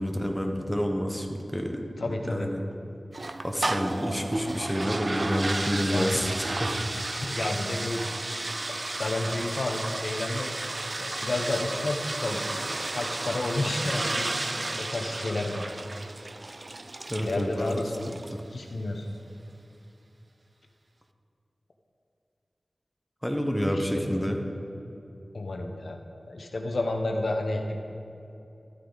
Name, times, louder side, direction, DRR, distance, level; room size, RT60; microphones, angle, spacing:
voice 1, 0.0-2.6 3.4-6.9 17.1-17.8 18.1-18.4 23.2-24.4, equal, ahead, 3 dB, 1.0 m, -29 dB
voice 2, 2.0-2.5 5.9-6.2 7.1-8.0 8.7-10.5 11.0-12.4 12.9-14.3 14.8-15.6 17.2-18.1 18.5-19.1 23.7-24.0 25.3-26.0 26.3-27.8, left 2 dB, 70° left, 3 dB, 0.9 m, -31 dB
sound 1, 3.1-18.4, right 2 dB, 40° right, 0.4 m, -33 dB
13.0 x 8.3 x 4.0 m, 2.8 s
wide cardioid pair, 70°, 0 cm